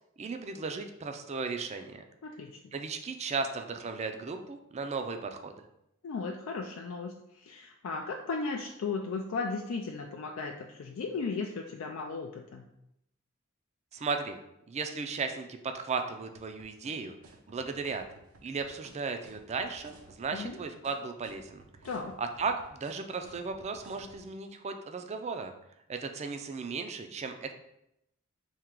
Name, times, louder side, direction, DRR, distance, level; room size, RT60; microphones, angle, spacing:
voice 1, 0.2-2.0 2.7-5.6 13.9-14.4 14.7-17.1 17.5-18.0 18.4-21.6 22.2-25.5 25.9-27.5, right 4 dB, 30° right, 6 dB, 0.4 m, -35 dB
voice 2, 2.2-2.7 6.0-12.7 20.3-20.6 21.8-22.2, left 4 dB, 70° left, 2 dB, 0.4 m, -36 dB
sound 1, 16.3-24.3, right 2 dB, 85° right, 0.7 m, -55 dB
3.6 x 2.8 x 4.5 m, 0.81 s
head